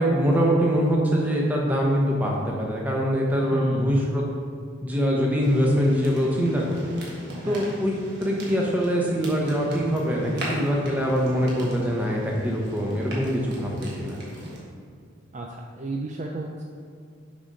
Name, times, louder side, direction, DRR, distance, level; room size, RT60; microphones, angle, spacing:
voice 1, 0.0-4.2 4.8-6.9 7.4-7.9 8.2-14.2, equal, 10° right, -3 dB, 0.9 m, -23 dB
voice 2, 3.5-4.0 7.4-7.7 15.3-16.6, right 2 dB, 35° right, 1 dB, 0.4 m, -33 dB
sound 1, 5.4-14.6, equal, 50° right, 1.5 m, -39 dB
7.0 x 4.0 x 5.2 m, 2.2 s
head